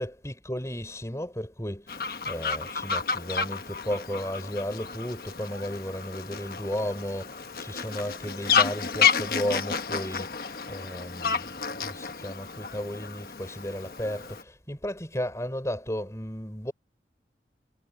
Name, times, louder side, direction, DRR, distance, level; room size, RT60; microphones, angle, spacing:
voice 1, 0.0-11.5 11.8-16.7, equal, 15° left, 5.2 m, -34 dB
Fowl, 1.9-14.4, left 6 dB, 55° left, 1.2 m, -30 dB
head